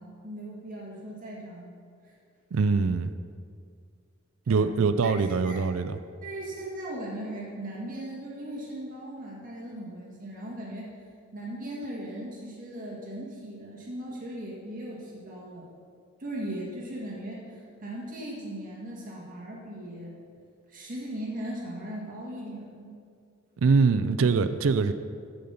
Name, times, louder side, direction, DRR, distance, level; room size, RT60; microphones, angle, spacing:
voice 1, 0.0-1.7 2.0-2.1 4.5-5.2 5.4-5.7 6.2-10.9 11.3-15.7 16.2-20.1 20.7-22.9, right 1 dB, 40° right, -4 dB, 1.9 m, -38 dB
voice 2, 2.5-3.1 4.5-6.0 23.6-24.9, right 4 dB, 80° right, 11 dB, 0.4 m, -23 dB
14.5 x 5.2 x 5.6 m, 2.2 s
head